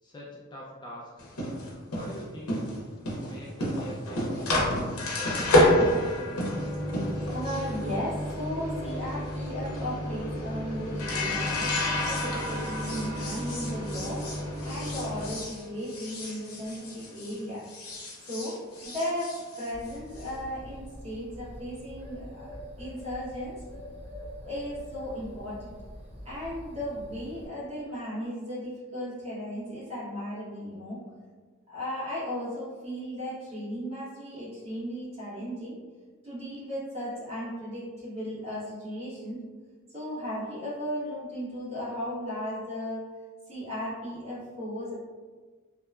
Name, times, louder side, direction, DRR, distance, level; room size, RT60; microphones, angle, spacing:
voice 1, 0.0-1.2 1.9-2.7 3.3-6.6, equal, 20° left, -5 dB, 0.3 m, -45 dB
sound 1, 1.2-17.4 17.7-20.3, left 1 dB, 90° left, 0.6 m, -29 dB
voice 2, 7.3-11.7 12.1-14.2 14.6-17.6 18.3-18.6 18.8-23.5 24.4-25.7 26.2-31.0 31.7-35.7 36.2-39.4 39.9-43.0 43.5-44.9, equal, 30° right, -10 dB, 1.2 m, -36 dB
Bird, 19.7-27.5, equal, 50° right, 1.5 m, -44 dB
2.8 x 2.2 x 2.3 m, 1.5 s
head